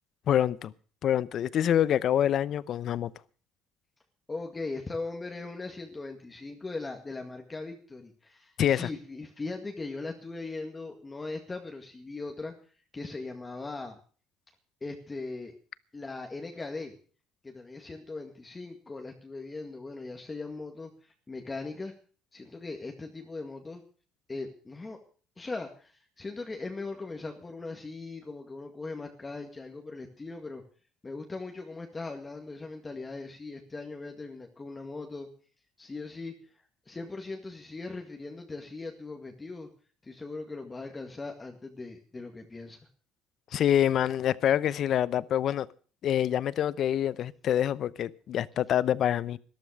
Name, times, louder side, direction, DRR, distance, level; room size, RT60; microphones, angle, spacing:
voice 1, 0.3-0.7 1.0-3.1 8.6-8.9 43.5-45.7 46.0-49.4, left 10 dB, 60° left, 0.7 m, -26 dB
voice 2, 4.3-12.5 12.9-14.0 14.8-15.6 15.9-16.9 17.4-21.9 22.3-23.8 24.3-25.0 25.4-30.6 31.0-35.3 35.8-39.7 40.0-42.9, left 3 dB, 20° left, 2.0 m, -39 dB
13.0 x 12.0 x 6.5 m
supercardioid pair, 90°, 0 cm